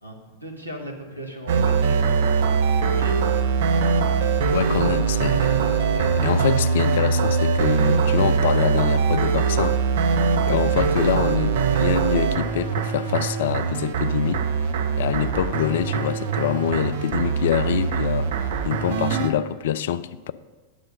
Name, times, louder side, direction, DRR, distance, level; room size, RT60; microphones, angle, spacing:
voice 1, 0.0-2.1 2.8-3.3, equal, 85° right, 1.3 m, -37 dB
sound 1, 1.5-19.3, right 6 dB, 55° right, 0.7 m, -22 dB
voice 2, 4.5-9.8 10.5-14.4 15.0-18.3 18.6-20.3, left 10 dB, 60° left, 0.3 m, -25 dB
8.5 x 6.6 x 5.2 m
figure-of-eight pair, 90°, 0 cm